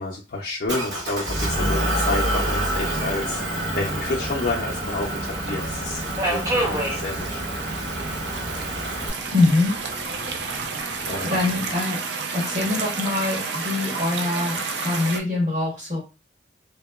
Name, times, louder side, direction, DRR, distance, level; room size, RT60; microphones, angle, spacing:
voice 1, 0.0-7.6 11.1-11.3, left 2 dB, 55° left, -3 dB, 0.4 m, -30 dB
Motor vehicle (road) / Engine, 0.7-9.1, right 1 dB, 85° right, 0.8 m, -27 dB
Subway metro underground, 1.9-11.8, right 1 dB, 15° right, 0.6 m, -34 dB
sound 1, 2.5-15.2, right 4 dB, 65° right, 0.4 m, -32 dB
voice 2, 9.3-9.7 11.3-12.0 12.3-16.0, left 2 dB, 40° right, -6 dB, 1.1 m, -23 dB
2.7 x 2.1 x 2.2 m, 0.30 s
head